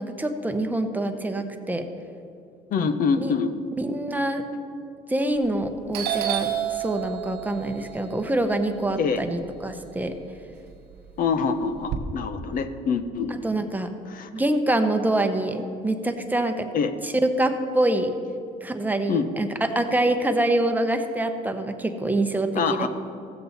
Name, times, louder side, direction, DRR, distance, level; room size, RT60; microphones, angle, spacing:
voice 1, 0.0-1.8 3.2-3.3 3.8-4.4 5.1-10.1 13.4-13.9 14.3-16.7 17.0-17.1 17.4-18.1 18.6-22.9, right 1 dB, 10° right, 6 dB, 0.8 m, -25 dB
voice 2, 2.7-3.5 9.0-9.2 11.2-13.4 14.1-14.3 16.7-16.9 19.1-19.3 22.5-22.9, left 5 dB, 55° left, 10 dB, 0.8 m, -25 dB
Doorbell, 5.3-5.6 5.9-10.1 10.4-12.0, right 11 dB, 70° right, 0.9 m, -31 dB
15.5 x 7.6 x 4.1 m, 2.5 s
cardioid pair, 110°, 17 cm